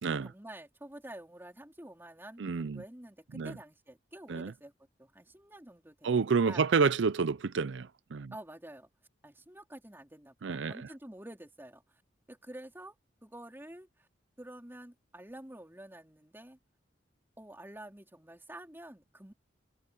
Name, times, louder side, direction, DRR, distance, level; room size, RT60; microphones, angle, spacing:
voice 1, 0.0-4.7 5.0-6.6 8.3-8.9 9.2-12.0 12.3-12.9 13.2-14.1 14.4-16.6 17.4-19.3, right 1 dB, 10° right, 4.0 m, -49 dB
voice 2, 2.4-2.8 3.3-3.6 4.3-4.5 6.0-8.3 10.4-10.9, right 5 dB, 85° right, 0.5 m, -29 dB
head